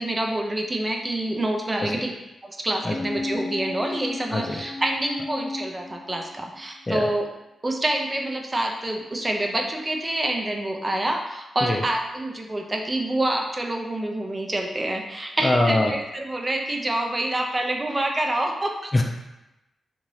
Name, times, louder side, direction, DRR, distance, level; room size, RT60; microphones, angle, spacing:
voice 1, 0.0-2.1 2.4-7.3 7.6-18.9, right 1 dB, 25° right, 2 dB, 0.5 m, -27 dB
sound 1, 2.8-6.6 6.9-7.0, left 2 dB, 5° right, 0.8 m, -34 dB
voice 2, 15.4-15.9 18.9-19.0, left 2 dB, 30° left, 2 dB, 0.5 m, -22 dB
2.9 x 2.5 x 3.1 m, 0.96 s
cardioid pair, 55°, 0 cm